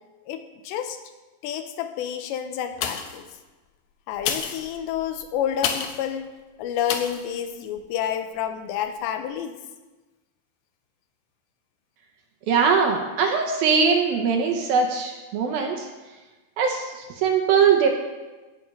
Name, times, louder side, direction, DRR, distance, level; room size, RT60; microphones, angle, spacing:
voice 1, 0.3-1.0 1.4-3.3 4.1-6.3 6.6-9.6, left 9 dB, 90° left, 7 dB, 3.0 m, -29 dB
sound 1, 2.7-3.3 4.1-6.1 6.9-7.3 7.8-7.9, left 7 dB, 75° left, 2.3 m, -30 dB
voice 2, 12.5-15.9 16.6-17.9, right 6 dB, 75° right, 2 dB, 2.3 m, -21 dB
16.0 x 6.8 x 5.4 m, 1.2 s
omnidirectional pair, 5.1 m